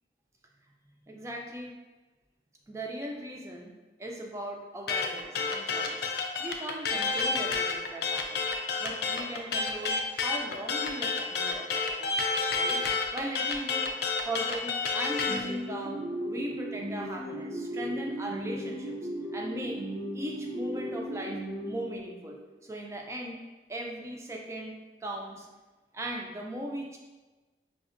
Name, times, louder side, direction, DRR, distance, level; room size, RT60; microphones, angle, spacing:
voice 1, 1.0-1.7 2.7-3.7 4.0-6.1 6.4-8.5 8.8-12.2 12.5-12.8 13.1-13.9 14.3-18.9 19.3-19.8 20.1-23.4 23.7-25.5 25.9-27.0, right 1 dB, 15° right, 0 dB, 0.3 m, -38 dB
sound 1, 4.9-15.4, left 4 dB, 60° left, 0.3 m, -29 dB
sound 2, 15.3-22.4, right 1 dB, 80° right, 0.6 m, -36 dB
4.9 x 2.1 x 2.5 m, 1.2 s
head